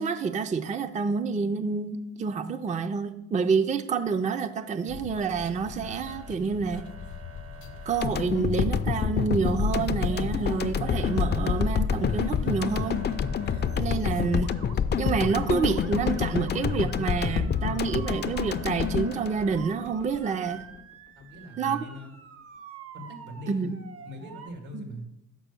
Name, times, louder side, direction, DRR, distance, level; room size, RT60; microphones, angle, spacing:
voice 1, 0.0-6.9 7.9-13.0 13.8-14.5 15.0-20.7 21.6-21.8 23.5-23.8 24.7-24.8, right 5 dB, 25° right, 9 dB, 0.4 m, -28 dB
Motor vehicle (road) / Siren, 4.6-5.5 5.8-6.4 6.7-8.1 9.9-10.5 10.8-13.8 14.2-14.7 15.1-24.5, right 7 dB, 50° right, 0.9 m, -47 dB
sound 1, 4.9-16.9, left 7 dB, 70° left, 0.8 m, -43 dB
sound 2, 8.0-20.2, left 7 dB, 35° left, 0.4 m, -27 dB
voice 2, 21.2-22.1 22.9-23.7 24.0-25.1, equal, 85° right, 3 dB, 2.1 m, -41 dB
6.0 x 5.9 x 6.9 m, 0.90 s
cardioid pair, 90°, 30 cm